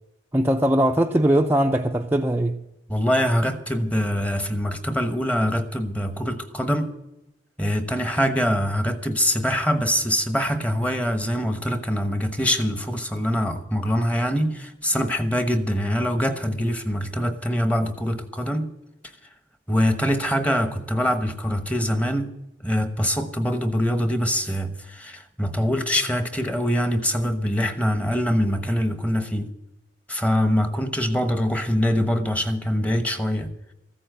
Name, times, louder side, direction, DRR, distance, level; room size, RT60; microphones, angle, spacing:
voice 1, 0.3-2.6, right 1 dB, 10° right, 0.5 m, -20 dB
voice 2, 2.9-6.9 7.6-18.7 19.7-22.3 22.6-29.5 30.1-33.5, equal, 5° left, 1.1 m, -24 dB
15.0 x 8.6 x 8.0 m
head